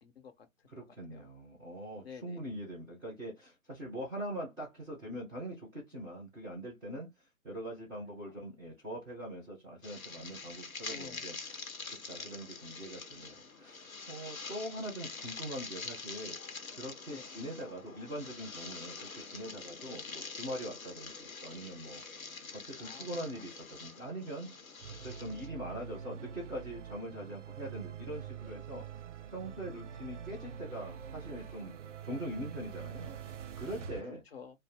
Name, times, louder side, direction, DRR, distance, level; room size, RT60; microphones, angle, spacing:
voice 1, 0.0-0.7 1.1-1.3 2.0-2.4 8.3-8.4 10.9-11.2 12.2-12.3 14.8-14.9 17.1-17.3 22.8-23.1 34.1-34.6, left 6 dB, 50° left, 0.7 m, -51 dB
voice 2, 0.7-16.4 16.7-24.5 25.0-28.8 29.3-31.7 32.0-34.2, right 1 dB, 5° right, 0.4 m, -43 dB
sound 1, 9.8-25.5, left 4 dB, 85° left, 0.9 m, -45 dB
sound 2, 24.8-34.0, right 8 dB, 65° right, 0.5 m, -45 dB
2.5 x 2.0 x 3.4 m
figure-of-eight pair, 130°, 40 cm